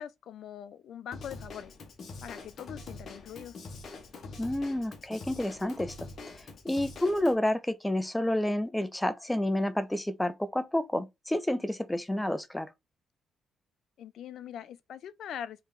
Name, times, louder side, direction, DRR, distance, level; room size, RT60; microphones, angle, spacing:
voice 1, 0.0-1.7 2.2-3.6 14.0-15.6, left 9 dB, 70° left, 0.6 m, -42 dB
Drum kit / Drum, 1.1-7.3, left 3 dB, 55° left, 1.5 m, -44 dB
voice 2, 4.4-6.1 6.3-12.7, left 1 dB, 10° left, 0.7 m, -30 dB
4.7 x 3.5 x 3.2 m
cardioid pair, 90°, 0 cm